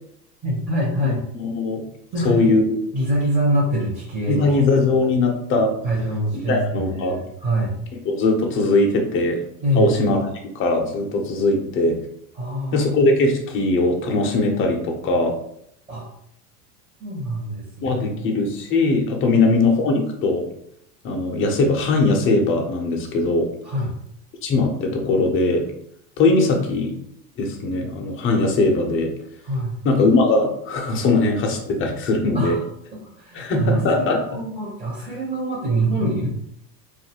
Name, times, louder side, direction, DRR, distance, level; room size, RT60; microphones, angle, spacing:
voice 1, 0.4-1.2 2.1-2.6 2.9-4.6 5.8-7.7 9.6-9.9 12.3-12.9 15.9-16.0 17.0-18.2 19.3-19.6 23.6-23.9 29.4-29.8 32.3-32.6 33.1-36.3, right 1 dB, 20° right, -5 dB, 0.8 m, -24 dB
voice 2, 1.0-1.8 2.2-2.6 4.3-5.7 6.5-7.2 8.0-9.4 9.7-10.2 10.5-11.9 12.7-15.3 17.8-20.5 21.0-23.5 24.4-25.6 26.2-26.9 27.4-29.1 29.8-32.6 33.3-34.2, left 2 dB, 25° left, 1 dB, 0.5 m, -20 dB
2.6 x 2.4 x 2.8 m, 0.72 s
supercardioid pair, 115°, 49 cm